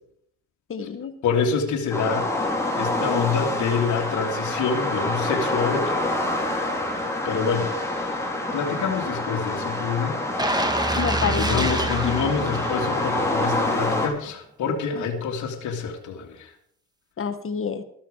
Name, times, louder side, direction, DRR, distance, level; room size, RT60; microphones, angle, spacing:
voice 1, 0.7-1.2 11.0-11.7 12.0-12.1 14.9-15.0 17.2-17.8, left 6 dB, 45° left, 9 dB, 1.7 m, -28 dB
voice 2, 1.2-6.0 7.2-8.2 8.5-10.2 11.0-16.5, left 6 dB, 75° left, 0 dB, 2.4 m, -27 dB
sound 1, 1.9-14.1, left 1 dB, 10° left, 4.6 m, -27 dB
sound 2, 10.4-13.3 13.7-13.9, right 2 dB, 15° right, 2.2 m, -27 dB
14.0 x 13.0 x 5.0 m, 0.67 s
cardioid pair, 90°, 30 cm